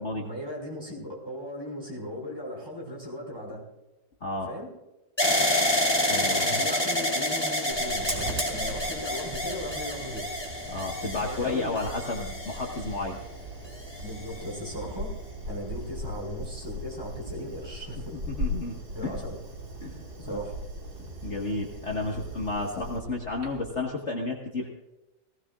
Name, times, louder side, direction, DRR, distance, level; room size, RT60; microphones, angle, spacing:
voice 1, 0.0-3.6 4.5-4.7 6.2-10.3 11.2-11.8 12.7-13.1 14.0-15.1 15.5-18.3 18.9-19.4 20.2-20.5, equal, 15° right, -2 dB, 5.4 m, -38 dB
sound 1, 5.2-13.2 13.9-14.5, left 1 dB, 15° left, 2.5 m, -28 dB
voice 2, 6.1-6.4 10.7-13.2 18.3-19.1 19.8-20.3 21.0-24.7, left 3 dB, 45° left, 0 dB, 1.8 m, -32 dB
Fire, 7.7-23.8, equal, 65° right, 4.0 m, -38 dB
18.5 x 17.5 x 2.5 m, 0.97 s
omnidirectional pair, 1.8 m